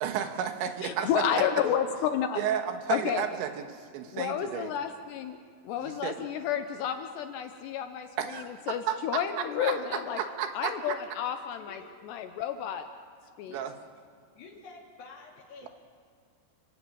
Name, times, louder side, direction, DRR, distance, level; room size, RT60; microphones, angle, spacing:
voice 1, 0.0-1.1 2.4-3.5 3.9-4.7 5.8-6.2 8.2-9.0 9.6-9.7 10.2-11.0 13.5-13.7, right 9 dB, 75° right, 6 dB, 3.4 m, -32 dB
voice 2, 0.8-2.4 2.9-3.2 4.1-5.4 5.6-10.2 10.5-12.9 13.4-13.6, left 9 dB, 80° left, 7 dB, 2.7 m, -31 dB
voice 3, 11.6-11.9 13.4-13.6 14.4-15.7, left 4 dB, 60° left, -1 dB, 5.2 m, -49 dB
29.5 x 15.0 x 8.6 m, 2.3 s
omnidirectional pair, 5.4 m